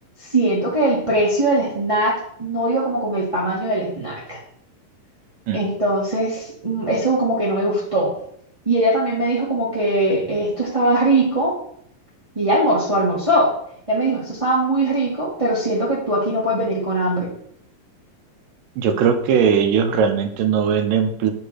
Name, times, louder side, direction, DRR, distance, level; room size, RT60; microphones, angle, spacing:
voice 1, 0.3-4.4 5.5-8.1 8.6-11.5 12.3-13.5 13.9-17.3, right 1 dB, 35° right, -6 dB, 0.5 m, -21 dB
voice 2, 18.8-21.3, right 7 dB, 80° right, 7 dB, 2.3 m, -19 dB
8.1 x 3.3 x 6.4 m, 0.66 s
omnidirectional pair, 3.9 m